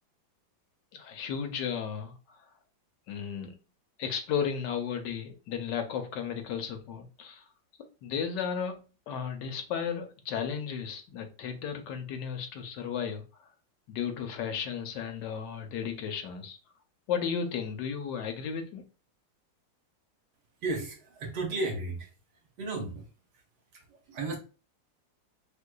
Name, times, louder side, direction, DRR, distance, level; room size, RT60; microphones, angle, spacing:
voice 1, 0.9-2.4 3.1-3.6 4.0-7.4 8.0-13.5 13.9-16.6 17.1-18.9, left 7 dB, 75° left, 1.2 m, -34 dB
voice 2, 20.6-22.1 22.6-23.1 23.7-24.4, right 2 dB, 65° right, 1.4 m, -34 dB
3.6 x 3.2 x 2.2 m
omnidirectional pair, 2.0 m